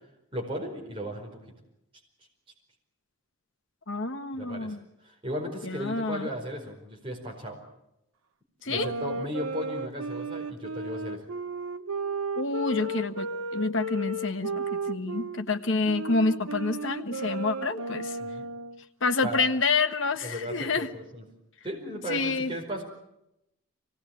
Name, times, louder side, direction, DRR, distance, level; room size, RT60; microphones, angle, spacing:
voice 1, 0.3-1.4 4.4-4.8 5.0-7.6 8.6-11.2 18.2-18.4 19.2-19.5 20.2-21.2 21.6-22.8, equal, 25° right, -1 dB, 4.8 m, -36 dB
voice 2, 3.9-4.8 5.6-6.3 8.6-8.9 12.4-18.2 19.0-20.9 22.1-22.5, left 3 dB, 60° left, 7 dB, 1.3 m, -28 dB
sound 1, 8.7-15.4 15.9-18.8, right 2 dB, 85° right, 1.0 m, -34 dB
24.5 x 18.5 x 8.8 m, 0.84 s
head